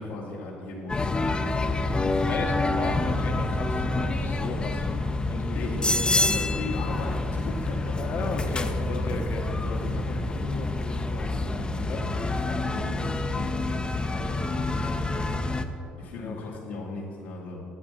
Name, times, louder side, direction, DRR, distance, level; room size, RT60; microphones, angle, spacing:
voice 1, 0.0-1.8 2.8-3.1 5.5-8.0 8.8-17.6, left 2 dB, 85° left, -9 dB, 2.4 m, -38 dB
sound 1, 0.9-15.7, left 2 dB, 20° left, 0.7 m, -27 dB
voice 2, 2.2-4.9 5.3-5.9 8.0-9.4 11.8-12.0 16.1-16.4, left 4 dB, 50° left, 4 dB, 1.2 m, -35 dB
10.5 x 8.2 x 4.2 m, 2.5 s
hypercardioid pair, 60°, 4 cm